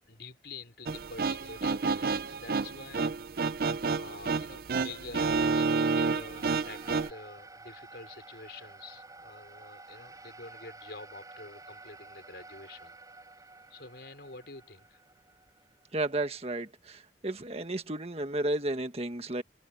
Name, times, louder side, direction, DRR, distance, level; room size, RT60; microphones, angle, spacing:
voice 1, 0.1-3.1 3.9-12.9 13.7-15.0, left 3 dB, 70° left, 4.6 m, -47 dB
sound 1, 0.9-7.1, right 4 dB, 55° right, 0.6 m, -30 dB
sound 2, 6.1-16.6, right 3 dB, 20° right, 8.0 m, -51 dB
voice 2, 15.9-19.4, right 2 dB, 35° right, 1.6 m, -33 dB
head